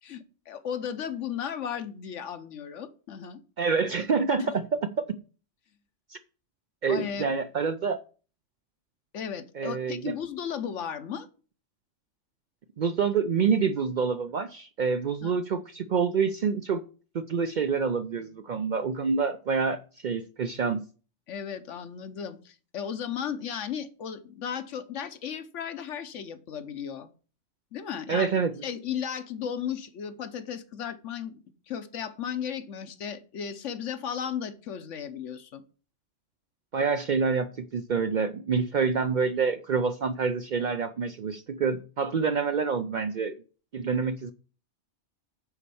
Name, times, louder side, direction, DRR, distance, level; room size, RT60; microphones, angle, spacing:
voice 1, 0.0-3.4 4.4-4.6 6.9-7.4 9.1-11.3 15.2-15.3 21.3-27.1 27.7-28.3 28.6-31.4 31.7-35.6, left 8 dB, 80° left, 10 dB, 1.2 m, -35 dB
voice 2, 3.6-4.6 6.1-6.2 6.8-8.0 9.5-10.1 12.8-16.8 17.1-20.8 28.1-28.6 36.7-43.4 43.7-44.3, right 5 dB, 60° right, 10 dB, 0.5 m, -27 dB
9.6 x 4.3 x 6.9 m, 0.38 s
omnidirectional pair, 1.2 m